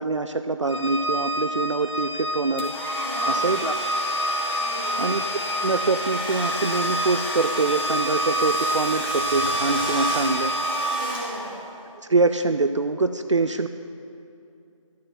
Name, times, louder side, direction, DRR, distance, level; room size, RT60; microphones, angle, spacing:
voice 1, 0.0-2.7 3.3-3.7 5.0-5.2 5.6-10.5 12.1-13.7, right 3 dB, 60° right, 9 dB, 0.4 m, -24 dB
Organ, 0.7-11.1, right 1 dB, 55° left, 1.3 m, -29 dB
Domestic sounds home sounds, 2.6-11.7, right 1 dB, 40° left, 2.0 m, -30 dB
voice 2, 2.9-3.5 4.6-5.1 10.9-11.5, equal, ahead, -21 dB, 1.3 m, -37 dB
12.0 x 4.4 x 7.3 m, 2.5 s
figure-of-eight pair, 170°, 18 cm